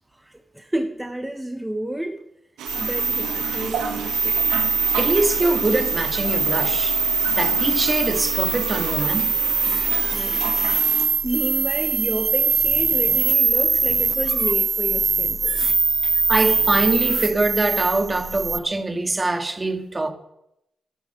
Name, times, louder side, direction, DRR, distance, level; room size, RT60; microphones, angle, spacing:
voice 1, 0.1-2.2 2.8-4.4 10.1-10.7 11.2-15.7, right 1 dB, 10° right, 1.3 m, -30 dB
sound 1, 2.6-11.1, right 7 dB, 90° right, 1.5 m, -33 dB
sound 2, 2.7-18.6, right 4 dB, 50° right, 0.7 m, -22 dB
voice 2, 5.0-7.0 7.4-9.4 16.0-20.1, right 2 dB, 30° right, 2.0 m, -23 dB
11.5 x 11.5 x 6.8 m
supercardioid pair, 45°, 0 cm